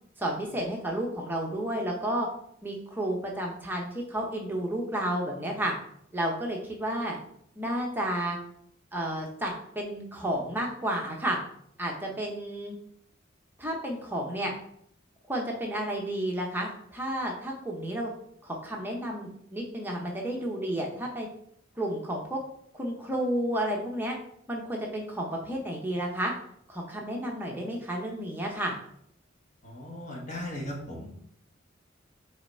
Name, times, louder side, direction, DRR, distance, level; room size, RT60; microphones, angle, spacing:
voice 1, 0.2-2.3 2.6-5.7 6.1-7.2 7.6-8.4 8.9-11.4 11.8-12.7 13.6-14.5 15.3-18.1 18.4-21.3 21.8-22.4 22.7-24.2 24.5-26.3 26.7-28.7, right 1 dB, 10° right, -1 dB, 0.8 m, -31 dB
voice 2, 29.6-31.1, left 1 dB, 40° left, -1 dB, 1.5 m, -37 dB
5.7 x 4.1 x 4.3 m, 0.69 s
head